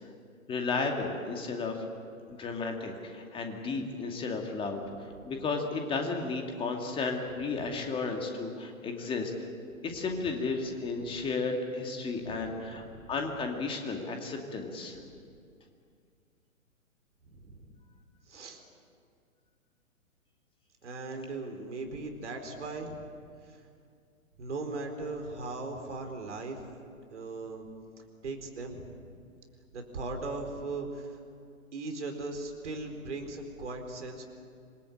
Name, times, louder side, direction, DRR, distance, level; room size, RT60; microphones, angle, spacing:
voice 1, 0.5-1.9 2.3-9.3 9.8-12.8 13.1-15.0, left 4 dB, 10° left, 3 dB, 2.5 m, -33 dB
voice 2, 12.1-13.1 15.1-15.2 17.2-17.8 18.3-18.6 20.8-23.0 23.4-23.6 24.4-26.6 27.1-27.7 28.2-29.0 29.7-31.2 31.7-34.2, right 3 dB, 55° right, 5 dB, 4.4 m, -39 dB
27.0 x 20.5 x 8.9 m, 2.3 s
figure-of-eight pair, 120°, 42 cm